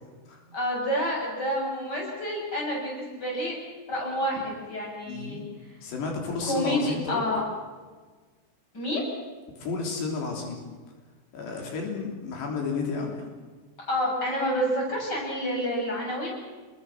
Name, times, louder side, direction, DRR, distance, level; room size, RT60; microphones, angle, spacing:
voice 1, 0.5-3.6 3.9-5.4 5.7-5.8 6.4-7.4 8.7-9.0 13.9-16.3, equal, 25° left, -2 dB, 8.2 m, -28 dB
voice 2, 5.1-5.5 5.8-7.2 9.6-10.7 11.3-13.3, left 4 dB, 85° left, 1 dB, 5.7 m, -32 dB
29.0 x 21.5 x 6.2 m, 1.4 s
omnidirectional pair, 4.7 m